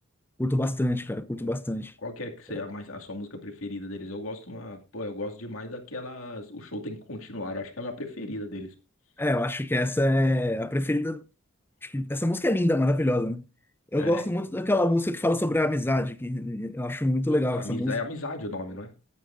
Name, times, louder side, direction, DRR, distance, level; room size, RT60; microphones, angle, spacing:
voice 1, 0.4-1.9 9.2-11.2 11.8-13.4 13.9-17.9, left 1 dB, 10° left, 0.5 m, -26 dB
voice 2, 2.0-8.7 14.0-14.3 17.3-18.9, left 2 dB, 80° left, 2.3 m, -36 dB
20.0 x 8.5 x 2.6 m
head